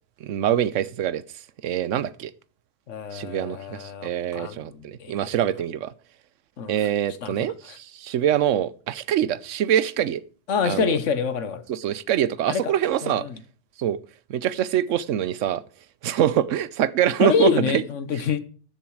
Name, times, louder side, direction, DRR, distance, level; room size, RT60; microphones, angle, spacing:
voice 1, 0.2-1.2 1.6-2.3 3.1-5.9 6.7-10.2 10.6-11.0 11.7-13.2 13.8-14.0 14.3-15.6 16.0-17.8, right 10 dB, 85° right, 1.0 m, -24 dB
voice 2, 2.9-5.1 6.6-6.7 7.2-7.3 10.5-11.6 12.5-12.7 13.0-13.4 17.2-18.4, left 6 dB, 90° left, 1.4 m, -26 dB
13.5 x 7.1 x 4.8 m
omnidirectional pair, 1.2 m